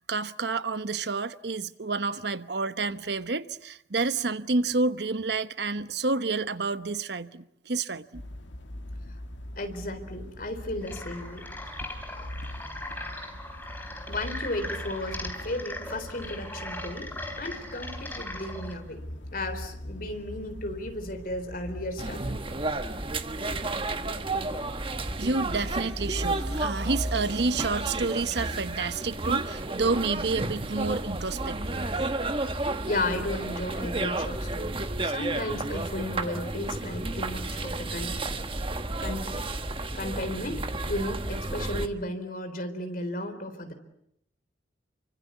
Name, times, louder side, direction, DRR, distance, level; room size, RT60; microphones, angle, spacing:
voice 1, 0.0-8.2 25.2-31.9, right 3 dB, 60° right, 1.0 m, -29 dB
sound 1, 8.1-22.1, left 1 dB, 80° left, 2.1 m, -42 dB
voice 2, 9.6-11.4 14.1-17.1 17.4-19.0 19.3-22.2 32.5-38.2 39.0-39.3 39.9-40.6 40.9-43.7, left 1 dB, 50° left, 4.0 m, -34 dB
sound 2, 10.8-18.7, left 1 dB, 10° left, 3.7 m, -39 dB
sound 3, 22.0-41.9, right 2 dB, 30° right, 1.3 m, -31 dB
29.0 x 24.5 x 8.3 m
head